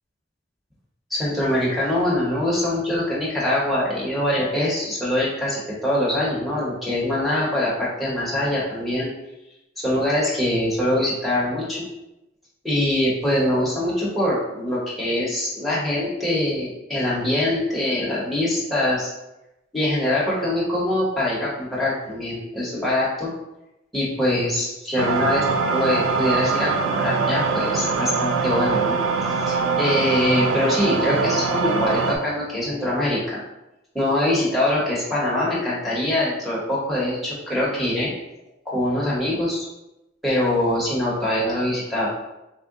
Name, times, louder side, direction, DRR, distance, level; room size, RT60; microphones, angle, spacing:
voice 1, 1.1-9.1 9.8-11.9 12.6-19.1 19.7-23.3 23.9-25.4 25.7-29.0 29.2-33.4 33.9-38.1 38.6-39.6 40.2-42.1, left 1 dB, ahead, -7 dB, 1.0 m, -23 dB
sound 1, 25.0-32.2, right 4 dB, 80° right, 0.4 m, -23 dB
3.6 x 2.3 x 3.7 m, 0.93 s
head